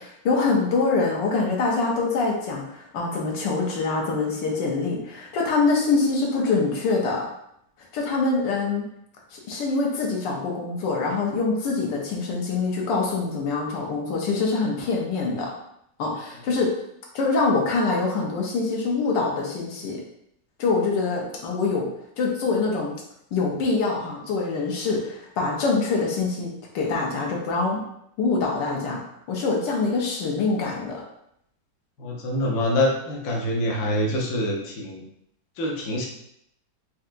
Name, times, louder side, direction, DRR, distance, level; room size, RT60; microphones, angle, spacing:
voice 1, 0.0-7.3 7.8-8.9 9.3-15.5 16.0-16.7 17.1-20.0 20.6-21.9 22.2-22.9 23.3-27.8 28.2-29.0 29.3-31.0, left 3 dB, 80° left, -1 dB, 1.4 m, -24 dB
voice 2, 32.0-35.0 35.6-36.1, left 1 dB, 65° left, -1 dB, 1.1 m, -25 dB
4.4 x 2.8 x 2.5 m, 0.75 s
omnidirectional pair, 2.0 m